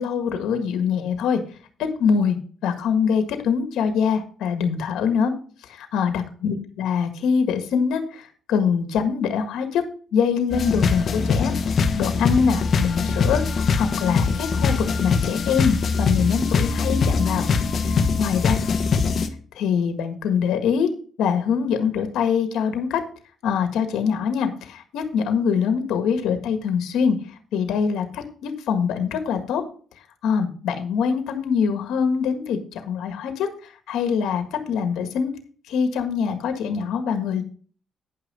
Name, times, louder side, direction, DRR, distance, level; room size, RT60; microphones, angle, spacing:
voice 1, 0.0-1.4 1.8-2.4 2.6-5.3 5.7-9.8 10.1-11.5 12.0-17.5 17.8-18.5 19.5-20.9 21.2-23.0 23.4-27.2 27.5-29.6 30.2-35.3 35.7-37.4, left 6 dB, 85° left, 8 dB, 1.6 m, -24 dB
sound 1, 10.5-19.3, left 5 dB, 50° left, 1.3 m, -22 dB
9.8 x 5.8 x 5.4 m, 0.42 s
cardioid pair, 90°, 0 cm